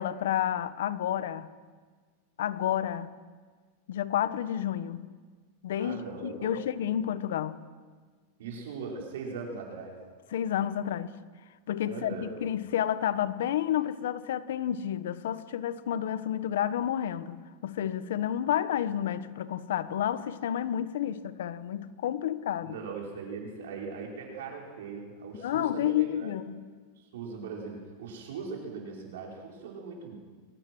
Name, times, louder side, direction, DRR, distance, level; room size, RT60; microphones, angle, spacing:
voice 1, 0.0-1.5 2.4-3.1 3.9-5.1 5.6-7.6 10.3-11.1 11.7-22.7 25.3-26.6, left 10 dB, 80° left, 1.1 m, -30 dB
voice 2, 5.8-6.6 8.4-10.0 11.8-12.5 22.6-26.3 27.0-30.2, right 5 dB, 80° right, 5.1 m, -40 dB
22.0 x 19.5 x 6.3 m
supercardioid pair, 150°, 0 cm